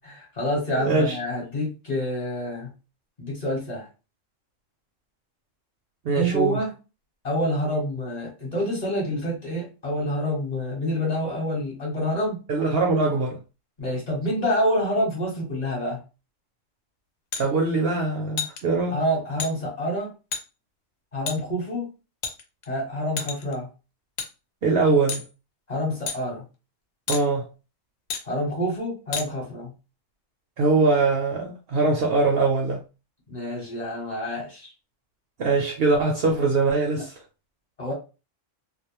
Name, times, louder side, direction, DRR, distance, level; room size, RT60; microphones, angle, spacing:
voice 1, 0.0-2.7 3.2-3.9 6.1-6.7 7.2-12.4 13.8-16.0 18.9-20.1 21.1-21.9 22.7-23.7 25.7-26.4 28.2-29.7 33.3-34.7 37.0-37.1 37.8-37.9, equal, 35° left, 1.0 m, -27 dB
voice 2, 0.8-1.2 6.0-6.6 12.5-13.4 17.4-19.0 24.6-25.2 27.1-27.5 30.6-32.8 35.4-37.1, right 3 dB, 60° right, 0.6 m, -22 dB
sound 1, 17.3-17.5 18.4-18.6 19.4-19.5 20.3-20.4 21.3-21.4 22.2-22.7 23.2-23.5 24.2-24.3 25.1-25.3 26.1-26.2 27.1-27.2 28.1-28.2 29.1-29.3, left 6 dB, 80° left, 0.9 m, -30 dB
2.3 x 2.0 x 2.9 m
omnidirectional pair, 1.3 m